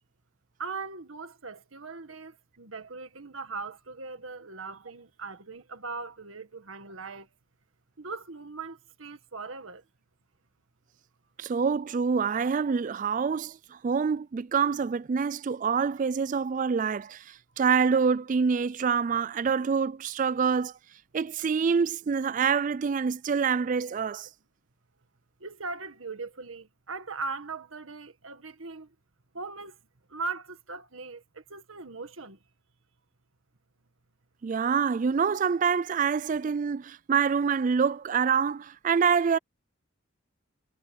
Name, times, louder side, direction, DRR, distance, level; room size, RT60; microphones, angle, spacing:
voice 1, 0.6-7.3 8.0-9.8 25.4-28.9 29.3-29.8 30.1-32.4, right 4 dB, 80° right, 1.8 m, -39 dB
voice 2, 11.4-20.7 21.1-24.3 34.4-39.4, right 6 dB, 40° right, 0.3 m, -26 dB
head